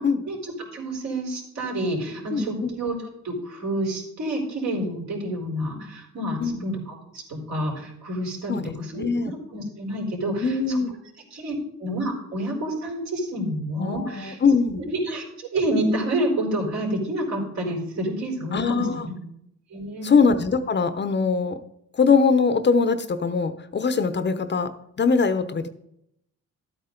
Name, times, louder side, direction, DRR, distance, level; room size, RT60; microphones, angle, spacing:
voice 1, 0.2-3.0 3.2-6.8 7.1-8.5 8.8-10.8 11.3-14.4 14.9-19.1 19.7-20.1, right 1 dB, 65° right, -1 dB, 4.3 m, -28 dB
voice 2, 2.3-2.8 6.4-6.6 8.5-9.3 10.4-10.9 13.8-14.8 18.5-19.1 20.0-21.6 21.9-25.7, left 5 dB, 35° left, 11 dB, 0.9 m, -22 dB
12.5 x 8.8 x 3.9 m, 0.77 s
cardioid pair, 90°, 30 cm